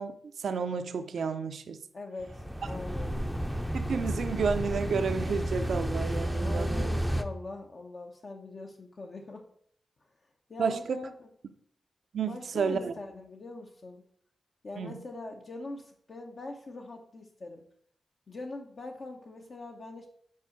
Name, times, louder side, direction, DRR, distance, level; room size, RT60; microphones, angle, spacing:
voice 1, 0.0-1.8 3.7-6.9 10.6-11.0 12.1-12.9 14.8-15.0, right 5 dB, 75° right, 0.6 m, -31 dB
voice 2, 1.9-3.2 6.4-9.4 10.5-11.3 12.2-14.0 14.6-17.6 18.3-20.1, left 2 dB, 55° left, 0.9 m, -42 dB
sound 1, 2.2-7.2, equal, ahead, 0.6 m, -31 dB
5.6 x 4.8 x 6.5 m
cardioid pair, 75°, 0 cm